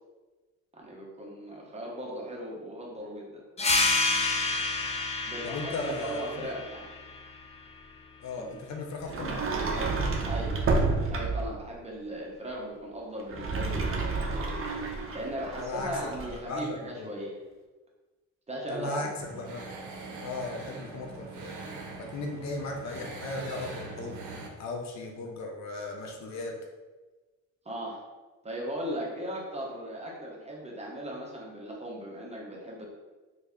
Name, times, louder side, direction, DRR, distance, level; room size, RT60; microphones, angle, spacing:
voice 1, 0.7-3.4 5.2-6.9 8.3-8.6 10.3-10.6 11.1-14.5 15.1-17.4 18.5-19.1 27.6-28.0 28.4-32.9, right 1 dB, 20° right, -3 dB, 1.0 m, -38 dB
sound 1, 3.6-8.7, left 3 dB, 20° left, 0.5 m, -30 dB
voice 2, 5.4-6.5 8.2-9.8 15.6-17.1 18.7-19.6 20.2-24.2 24.6-26.5, left 2 dB, 65° left, 1 dB, 0.7 m, -37 dB
Sliding door, 9.1-11.6 13.2-16.4, right 3 dB, 45° right, 0.6 m, -30 dB
sound 2, 19.2-24.5, right 3 dB, 90° right, 0.6 m, -42 dB
3.2 x 2.7 x 3.4 m, 1.2 s
cardioid pair, 90°, 30 cm